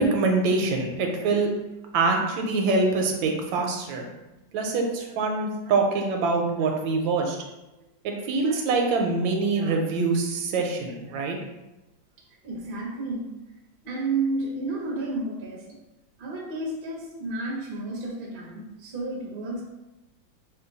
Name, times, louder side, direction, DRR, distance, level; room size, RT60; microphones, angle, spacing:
voice 1, 0.0-1.5 1.9-4.1 4.5-7.4 8.0-11.4, right 3 dB, 85° right, 2 dB, 1.4 m, -24 dB
voice 2, 12.4-13.3 13.8-15.6 16.2-19.6, right 2 dB, 55° right, -2 dB, 0.6 m, -31 dB
3.7 x 2.2 x 3.9 m, 1.0 s
omnidirectional pair, 2.0 m